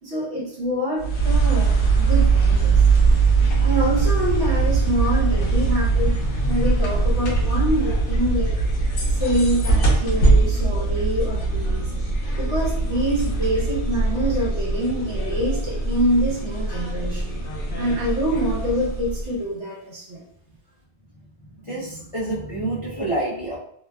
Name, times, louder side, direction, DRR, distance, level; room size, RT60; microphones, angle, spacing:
voice 1, 0.0-2.8 3.6-6.1 6.4-8.5 9.2-11.9 12.4-17.4 17.7-20.2, equal, 70° right, -4 dB, 1.2 m, -25 dB
sound 1, 1.0-19.4, right 3 dB, 85° left, 1.1 m, -21 dB
voice 2, 21.6-23.6, right 2 dB, 45° left, -8 dB, 0.4 m, -27 dB
2.9 x 2.2 x 2.2 m, 0.68 s
omnidirectional pair, 1.2 m